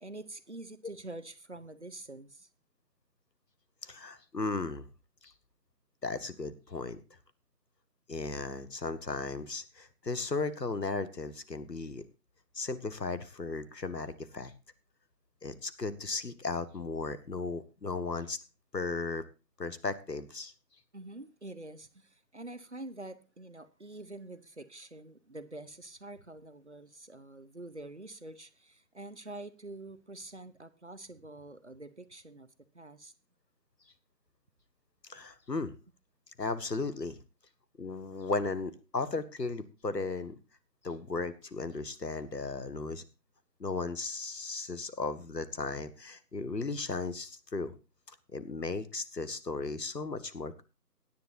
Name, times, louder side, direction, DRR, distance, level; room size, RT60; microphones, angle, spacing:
voice 1, 0.0-2.5 20.9-32.5 32.7-33.1, right 2 dB, 45° right, 0.9 m, -46 dB
voice 2, 3.8-4.9 5.2-5.3 6.0-7.0 8.1-12.1 12.5-14.5 15.4-18.4 18.7-19.2 19.6-20.5 35.1-35.7 36.4-37.2 37.8-40.3 40.8-43.0 43.6-47.7 48.1-50.6, left 3 dB, 80° left, 1.6 m, -36 dB
17.0 x 10.5 x 2.6 m
figure-of-eight pair, 170°, 49 cm